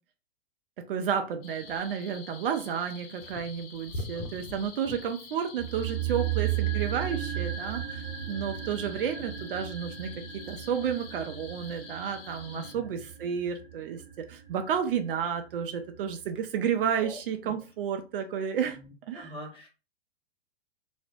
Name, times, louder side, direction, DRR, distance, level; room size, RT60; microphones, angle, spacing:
voice 1, 0.9-14.0 14.3-18.8 19.1-19.3, right 8 dB, 60° right, 0.4 m, -31 dB
sound 1, 1.4-12.7, left 3 dB, 65° left, 0.6 m, -45 dB
voice 2, 3.9-4.3 12.5-13.0 16.6-16.7 17.0-17.5 19.1-19.7, left 1 dB, 15° left, 1.3 m, -45 dB
sound 2, 5.6-15.8 16.1-16.2, right 11 dB, 30° right, 0.9 m, -35 dB
2.5 x 2.1 x 2.5 m
hypercardioid pair, 105°, 31 cm